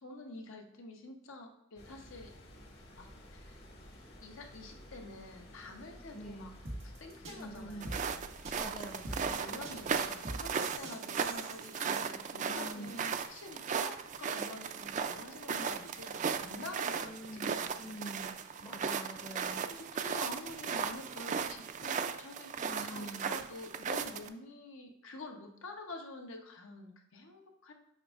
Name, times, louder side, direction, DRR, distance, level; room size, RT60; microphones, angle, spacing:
voice 1, 0.0-2.4 3.0-3.6 4.2-6.5 6.8-8.3 9.1-18.0 18.5-18.7 19.7-27.7, left 2 dB, 80° left, 3 dB, 0.9 m, -48 dB
sound 1, 1.8-10.2, left 1 dB, 55° left, 1.6 m, -53 dB
voice 2, 6.1-6.6 7.3-7.9 8.6-9.4 12.5-12.9 17.0-19.7 22.6-23.3, right 1 dB, 25° left, 0 dB, 0.7 m, -46 dB
sound 2, 6.6-11.7, right 1 dB, 90° right, 1.6 m, -43 dB
sound 3, 7.8-24.3, right 6 dB, 40° right, 0.3 m, -37 dB
7.6 x 5.1 x 2.4 m, 0.80 s
head